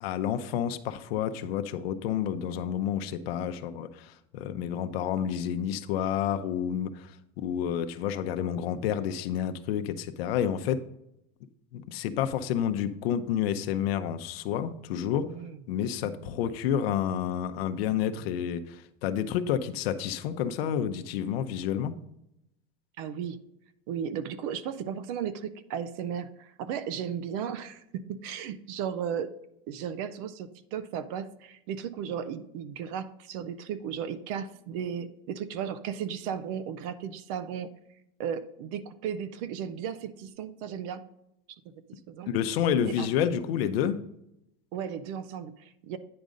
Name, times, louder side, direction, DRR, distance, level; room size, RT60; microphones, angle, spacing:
voice 1, 0.0-10.8 11.7-15.4 15.7-22.0 42.3-44.1, left 9 dB, 80° left, 9 dB, 0.7 m, -29 dB
voice 2, 15.3-15.6 16.0-16.2 23.0-23.4 23.9-29.3 29.7-37.7 38.2-41.0 41.5-41.6 41.9-42.3 42.8-43.1 44.7-46.0, right 8 dB, 35° right, 14 dB, 0.4 m, -35 dB
9.6 x 5.2 x 3.7 m, 0.81 s
supercardioid pair, 175°, 30 cm